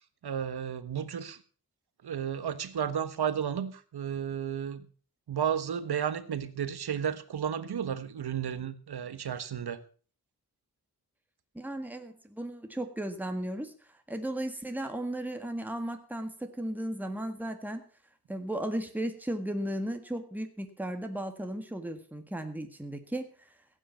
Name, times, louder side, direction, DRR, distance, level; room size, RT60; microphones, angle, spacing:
voice 1, 0.2-1.4 2.0-4.8 5.3-9.8, right 8 dB, 75° right, 12 dB, 1.4 m, -33 dB
voice 2, 11.5-13.7 14.1-17.8 18.3-23.5, right 1 dB, 5° right, 5 dB, 1.7 m, -35 dB
16.0 x 9.0 x 5.6 m, 0.40 s
wide cardioid pair, 130°, 38 cm